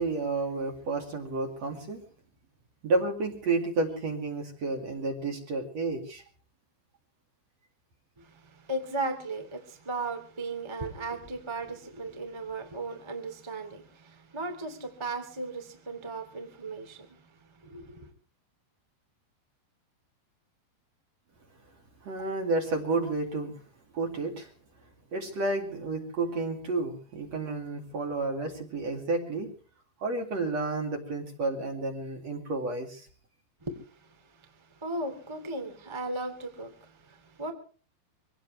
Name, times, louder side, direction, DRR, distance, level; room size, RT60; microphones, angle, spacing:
voice 1, 0.0-2.0 2.8-6.2 22.0-23.5 23.9-24.5 25.1-29.5 30.0-33.1, right 3 dB, 45° right, 2.9 m, -31 dB
voice 2, 8.2-18.1 33.6-37.5, right 2 dB, 10° right, 1.5 m, -37 dB
25.0 x 18.0 x 3.2 m
omnidirectional pair, 5.3 m